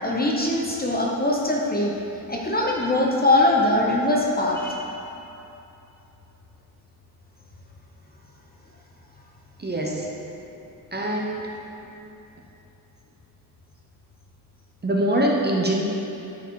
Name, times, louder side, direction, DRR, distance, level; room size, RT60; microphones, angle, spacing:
voice 1, 0.0-2.0 2.3-4.8, left 1 dB, 25° left, -2 dB, 0.7 m, -22 dB
voice 2, 9.6-10.1 10.9-11.4 14.8-15.8, right 1 dB, 25° right, -2 dB, 0.7 m, -23 dB
10.0 x 4.7 x 4.6 m, 2.9 s
wide cardioid pair, 170°, 39 cm